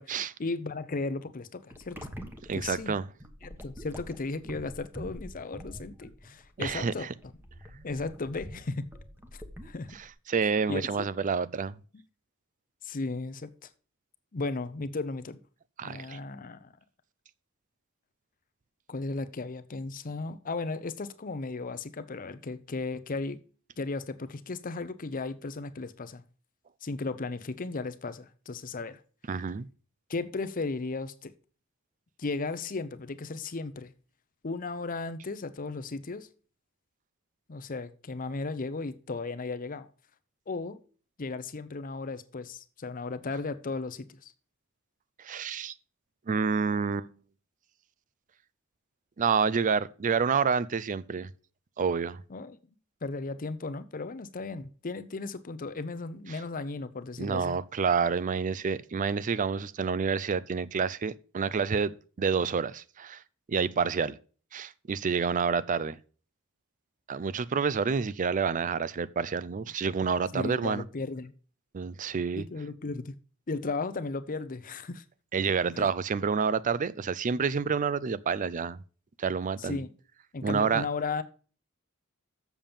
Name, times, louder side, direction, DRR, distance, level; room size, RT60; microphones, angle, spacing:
voice 1, 0.0-2.0 2.5-2.9 3.4-7.1 7.8-8.9 9.3-10.0 10.7-11.1 12.8-13.7 14.3-15.4 15.8-16.7 18.9-23.4 23.8-26.2 26.8-29.0 30.1-31.3 32.2-33.9 34.4-36.3 37.5-39.9 40.5-40.8 41.2-44.3 52.3-52.6 53.0-57.6 70.3-71.3 72.4-73.1 73.5-75.0 75.7-75.9 79.6-79.9 80.3-81.2, left 3 dB, 40° left, 0.6 m, -35 dB
sound 1, 1.7-10.1, equal, 10° right, 1.1 m, -45 dB
voice 2, 2.5-3.1 6.6-7.1 10.3-11.8 15.8-16.2 29.3-29.7 45.2-45.7 46.3-47.1 49.2-51.3 51.8-52.2 56.3-56.4 57.2-63.2 63.5-64.2 64.5-66.0 67.1-70.8 71.7-72.4 75.3-78.8 79.2-79.8 80.4-80.9, right 5 dB, 35° right, 0.4 m, -28 dB
7.3 x 7.0 x 5.3 m
head